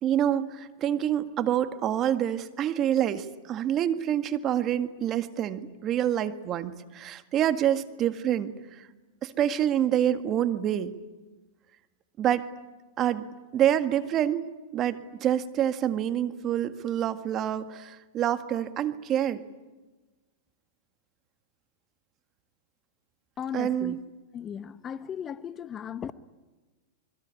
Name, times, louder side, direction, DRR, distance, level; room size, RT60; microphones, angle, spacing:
voice 1, 0.0-8.9 9.2-11.0 12.2-12.5 13.0-13.3 13.5-14.5 14.7-19.4 23.5-24.0, right 10 dB, 35° right, 1.8 m, -27 dB
voice 2, 23.4-24.0 24.3-26.1, left 8 dB, 25° left, 1.0 m, -36 dB
27.0 x 22.0 x 9.9 m
hypercardioid pair, 115°, 0 cm